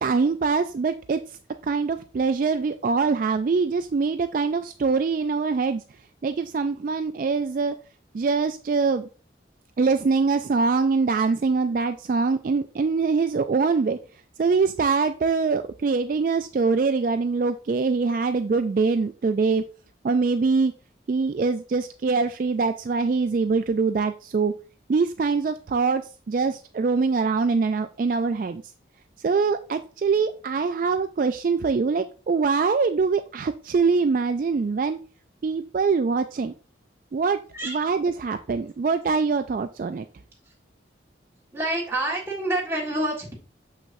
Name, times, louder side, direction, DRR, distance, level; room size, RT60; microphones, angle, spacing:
voice 1, 0.0-5.8 6.2-7.8 8.1-9.1 9.8-14.0 14.4-19.6 20.0-20.7 21.1-24.5 24.9-28.6 29.2-35.0 35.4-36.5 37.1-40.1, right 4 dB, 45° right, 8 dB, 0.3 m, -23 dB
voice 2, 41.5-43.3, right 1 dB, 15° right, -3 dB, 1.7 m, -27 dB
6.7 x 6.1 x 2.6 m, 0.37 s
head